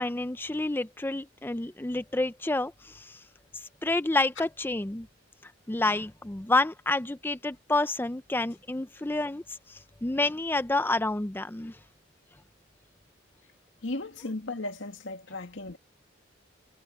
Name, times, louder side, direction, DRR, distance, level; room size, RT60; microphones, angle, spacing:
voice 1, 0.0-3.2 3.8-5.1 5.7-11.8, left 2 dB, 10° left, 0.5 m, -29 dB
voice 2, 13.8-15.8, left 2 dB, 85° left, 2.1 m, -36 dB
head